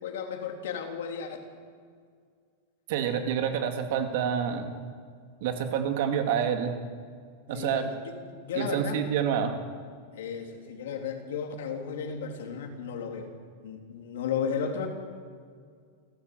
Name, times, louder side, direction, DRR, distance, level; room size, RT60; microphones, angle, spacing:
voice 1, 0.0-1.5 7.5-9.1 10.1-13.3 13.6-14.9, left 6 dB, 75° left, 3 dB, 3.7 m, -34 dB
voice 2, 2.9-4.7 5.4-6.7 7.5-7.8 8.5-9.5, right 8 dB, 55° right, 6 dB, 2.3 m, -28 dB
28.5 x 13.0 x 8.1 m, 2.1 s
supercardioid pair, 170°, 0 cm